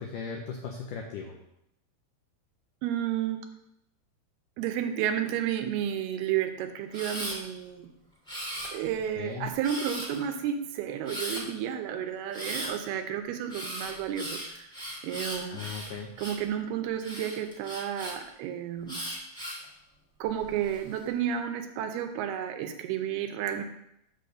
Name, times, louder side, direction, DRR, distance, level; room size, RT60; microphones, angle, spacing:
voice 1, 0.0-1.4 9.2-9.5 15.5-16.1, left 6 dB, 85° left, 2 dB, 1.8 m, -37 dB
voice 2, 2.8-3.4 4.6-7.9 8.7-14.7 15.0-15.6 16.2-19.0 20.2-23.6, right 9 dB, 80° right, 7 dB, 2.5 m, -31 dB
Camera, 6.9-7.4 8.3-9.0 9.6-10.2 11.0-11.4 12.3-12.7 13.5-16.5 17.0-18.1 18.9-19.6 20.3-20.8, equal, ahead, 1.4 m, -37 dB
8.3 x 4.0 x 6.6 m, 0.79 s
omnidirectional pair, 4.7 m